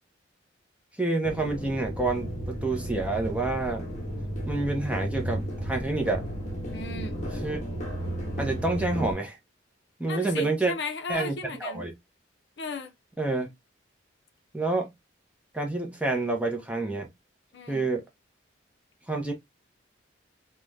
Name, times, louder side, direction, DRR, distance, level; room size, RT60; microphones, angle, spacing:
voice 1, 1.0-3.8 4.5-6.2 7.4-7.6 8.4-9.4 10.0-10.7 11.1-11.9 13.2-13.5 14.5-14.9 15.5-17.1 17.7-18.0 19.1-19.3, right 2 dB, 5° right, 0.5 m, -28 dB
sound 1, 1.2-9.1, right 1 dB, 35° left, 0.8 m, -33 dB
voice 2, 6.7-7.2 10.1-11.8 12.6-12.9 17.5-17.9, left 3 dB, 60° left, 0.5 m, -35 dB
2.5 x 2.2 x 3.1 m
head